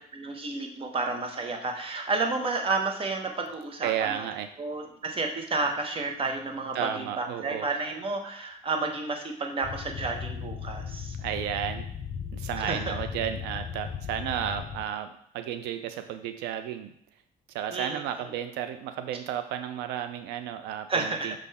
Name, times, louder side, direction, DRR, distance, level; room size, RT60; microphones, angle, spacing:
voice 1, 0.1-4.2 4.6-11.1 12.6-13.0 17.7-18.0 20.9-21.4, right 3 dB, 35° right, 3 dB, 1.0 m, -31 dB
voice 2, 3.8-4.5 6.7-7.7 11.2-11.8 12.3-16.9 17.5-21.4, right 10 dB, 90° right, 9 dB, 0.4 m, -33 dB
sound 1, 9.6-14.9, left 7 dB, 45° left, 0.6 m, -37 dB
6.1 x 3.8 x 4.1 m, 0.66 s
cardioid pair, 110°, 17 cm